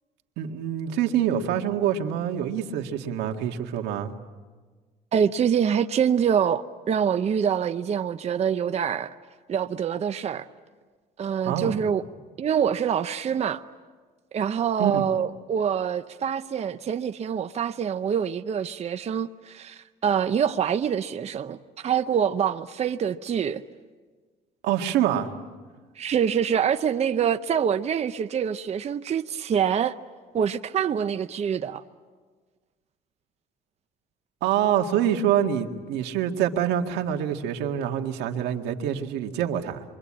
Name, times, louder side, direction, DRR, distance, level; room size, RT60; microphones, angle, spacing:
voice 1, 0.4-4.1 11.4-11.8 14.8-15.0 24.6-25.3 34.4-39.8, right 10 dB, 90° right, 2.0 m, -26 dB
voice 2, 5.1-9.1 9.5-10.5 11.2-12.0 12.4-13.6 14.3-23.6 26.0-30.0 30.3-31.8, right 8 dB, 40° right, 0.8 m, -25 dB
27.5 x 24.0 x 8.8 m
cardioid pair, 110°, 17 cm